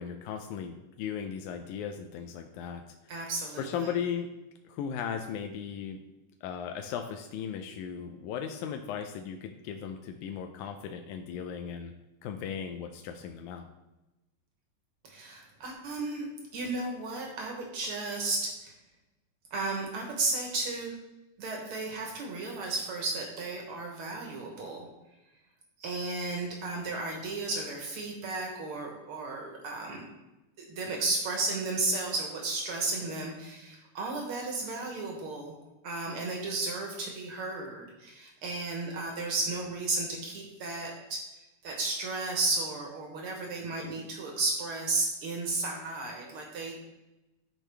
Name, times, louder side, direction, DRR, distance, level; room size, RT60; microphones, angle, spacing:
voice 1, 0.0-2.8 3.6-4.3 4.7-6.0 6.4-11.9 12.2-13.7, left 7 dB, 85° left, 5 dB, 1.7 m, -36 dB
voice 2, 3.1-3.9 15.0-16.3 16.5-18.7 19.5-21.0 21.4-24.9 25.8-30.0 30.6-35.5 35.8-41.2 41.6-46.9, right 3 dB, 75° right, 1 dB, 1.2 m, -33 dB
12.0 x 4.5 x 3.3 m, 1.0 s
omnidirectional pair, 3.9 m